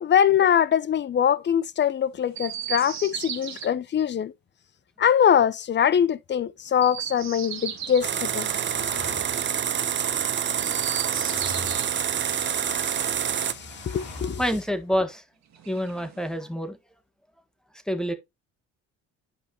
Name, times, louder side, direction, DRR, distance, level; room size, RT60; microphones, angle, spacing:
voice 1, 0.0-4.3 5.0-8.5 12.2-14.4, left 8 dB, 30° left, 0.6 m, -23 dB
Chirp tweet, 2.3-3.7 6.7-8.1 10.5-11.9 13.3-14.4 15.5-16.4, right 9 dB, 50° right, 1.8 m, -36 dB
sound 1, 7.1-15.0, left 3 dB, 65° left, 3.1 m, -45 dB
sound 2, 8.0-13.5, right 8 dB, 30° right, 0.7 m, -27 dB
voice 2, 14.4-15.2 15.6-16.8 17.9-18.1, equal, ahead, 1.5 m, -27 dB
9.8 x 5.0 x 2.9 m
supercardioid pair, 75°, 36 cm